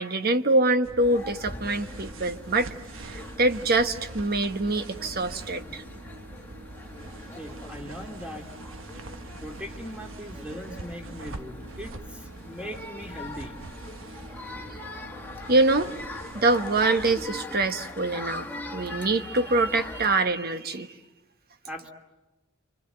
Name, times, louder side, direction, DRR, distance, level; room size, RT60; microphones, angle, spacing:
voice 1, 0.0-2.7 3.1-5.8 15.5-15.9 16.3-18.5 18.7-20.9, right 2 dB, 50° right, 9 dB, 1.3 m, -24 dB
sound 1, 0.8-17.4, right 2 dB, 75° right, 1.2 m, -43 dB
sound 2, 1.0-20.2, left 2 dB, 10° left, 1.6 m, -42 dB
voice 2, 7.4-8.5 9.4-13.6 21.7-21.9, equal, 5° right, 3 dB, 2.6 m, -40 dB
28.5 x 25.5 x 7.9 m, 1.1 s
head